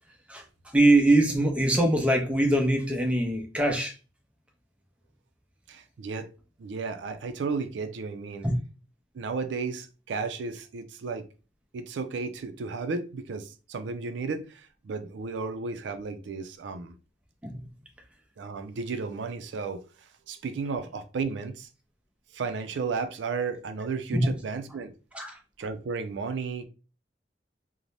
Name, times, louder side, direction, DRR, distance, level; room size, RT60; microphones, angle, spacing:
voice 1, 0.7-3.9 8.4-8.6 17.4-17.5 24.1-24.3 25.1-25.4, right 1 dB, 5° right, 0.5 m, -22 dB
voice 2, 5.7-6.3 6.6-8.5 9.1-11.3 11.7-16.9 18.4-19.8 20.3-21.7 22.3-24.9 25.6-26.7, right 4 dB, 85° right, 0.4 m, -33 dB
2.6 x 2.1 x 3.1 m
head